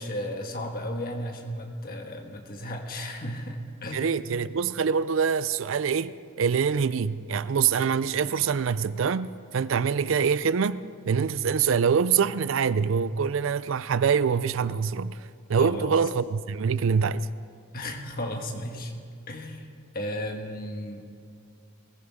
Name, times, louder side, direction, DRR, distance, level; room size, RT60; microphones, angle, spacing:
voice 1, 0.0-4.1 15.6-15.9 17.7-18.9 19.3-19.7 19.9-21.0, left 1 dB, 50° left, 1.5 m, -34 dB
voice 2, 3.9-10.8 11.1-15.2 15.5-17.3, right 6 dB, 70° right, 0.4 m, -25 dB
21.5 x 15.0 x 3.6 m
head